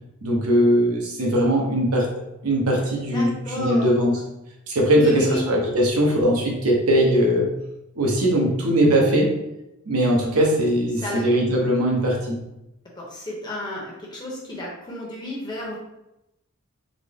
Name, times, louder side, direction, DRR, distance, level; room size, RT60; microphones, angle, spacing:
voice 1, 0.2-2.1 2.4-4.2 4.7-7.5 8.0-9.3 9.9-12.4, equal, 85° right, -1 dB, 0.8 m, -20 dB
voice 2, 3.1-3.9 4.9-5.5 11.0-11.2 13.0-15.8, left 1 dB, 20° left, -4 dB, 0.8 m, -31 dB
4.0 x 2.1 x 3.4 m, 0.90 s
head